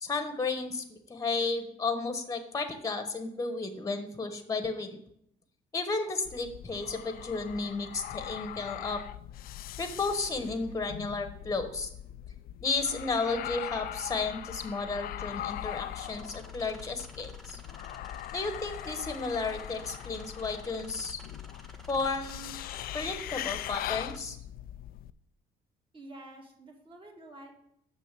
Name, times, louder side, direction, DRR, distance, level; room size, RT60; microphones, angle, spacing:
voice 1, 0.0-5.0 5.7-9.0 9.8-11.9 12.6-17.6 18.3-21.2 21.9-22.5 22.9-24.4, left 3 dB, 20° left, 8 dB, 1.1 m, -33 dB
sound 1, 6.2-25.1, left 12 dB, 60° left, 0.4 m, -41 dB
sound 2, 15.4-24.2, left 1 dB, ahead, 1.2 m, -53 dB
voice 2, 25.9-27.6, right 1 dB, 30° right, 0 dB, 2.3 m, -49 dB
6.5 x 6.2 x 7.5 m, 0.73 s
cardioid pair, 110°, 17 cm